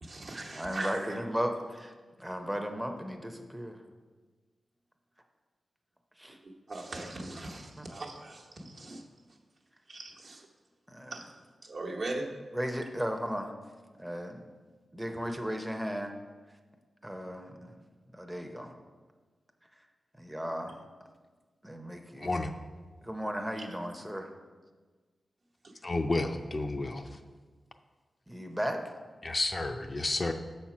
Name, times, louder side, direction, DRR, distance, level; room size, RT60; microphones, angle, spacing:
voice 1, 0.0-1.0 6.7-9.0 9.9-10.4 11.1-11.2 11.6-12.3, right 2 dB, 60° right, -1 dB, 1.0 m, -39 dB
voice 2, 0.5-1.9 2.2-3.8 6.2-6.4 7.8-7.9 10.9-11.3 12.5-13.5 14.0-14.4 14.9-16.2 17.0-17.8 18.1-18.7 20.2-20.8 21.6-22.3 23.0-24.3 28.3-28.8, equal, 5° right, 4 dB, 0.6 m, -35 dB
voice 3, 22.2-22.5 25.8-27.2 29.2-30.3, left 2 dB, 35° left, 6 dB, 0.4 m, -31 dB
6.8 x 4.3 x 5.9 m, 1.4 s
wide cardioid pair, 95°, 0 cm